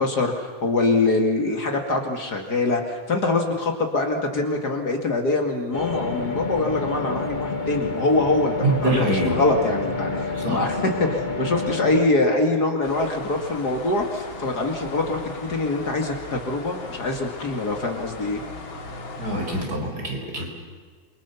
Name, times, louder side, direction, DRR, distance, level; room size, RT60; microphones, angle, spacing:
voice 1, 0.0-18.4, left 2 dB, 50° left, 3 dB, 2.8 m, -24 dB
sound 1, 5.7-12.0, left 3 dB, 25° left, 2.0 m, -28 dB
voice 2, 8.6-9.4 10.3-10.6 19.2-20.5, right 2 dB, 50° right, 1 dB, 5.7 m, -25 dB
sound 2, 12.8-19.7, left 3 dB, 75° left, 3.2 m, -38 dB
28.0 x 24.0 x 7.1 m, 1.6 s
omnidirectional pair, 2.2 m